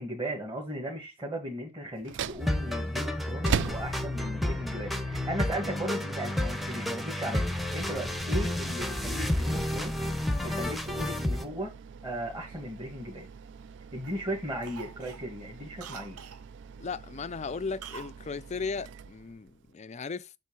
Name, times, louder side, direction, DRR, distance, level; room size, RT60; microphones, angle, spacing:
voice 1, 0.0-10.0 10.4-11.7 12.0-13.3 13.9-16.2, right 1 dB, 20° right, 1.8 m, -36 dB
sound 1, 1.9-19.7, right 7 dB, 55° right, 0.3 m, -42 dB
sound 2, 2.4-11.4, left 1 dB, ahead, 0.8 m, -31 dB
Cough, 12.4-13.7 14.0-14.3 14.6-16.4 17.8-18.2 18.4-18.5, right 7 dB, 80° right, 0.8 m, -46 dB
voice 2, 16.8-20.4, left 4 dB, 30° left, 0.4 m, -36 dB
7.4 x 3.2 x 6.1 m
head